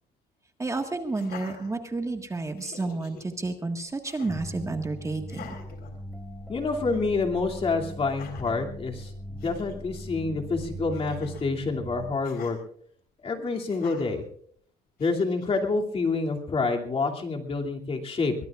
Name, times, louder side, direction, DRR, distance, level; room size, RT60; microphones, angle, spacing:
voice 1, 0.6-5.4, right 3 dB, 20° right, 5 dB, 1.6 m, -31 dB
Laughter, 1.1-2.2 2.6-3.3 4.0-4.5 5.2-6.5 6.9-7.1 8.0-8.6 9.1-9.2 9.4-9.8 10.9-11.5 12.2-12.6 13.7-14.2 15.0-15.6, left 6 dB, 65° left, 4.2 m, -46 dB
sound 1, 4.3-12.2, equal, ahead, 1.6 m, -40 dB
voice 2, 6.5-12.6 13.2-14.2 15.0-18.3, left 3 dB, 35° left, 1 dB, 2.7 m, -28 dB
22.5 x 21.0 x 2.5 m, 0.63 s
cardioid pair, 110°, 17 cm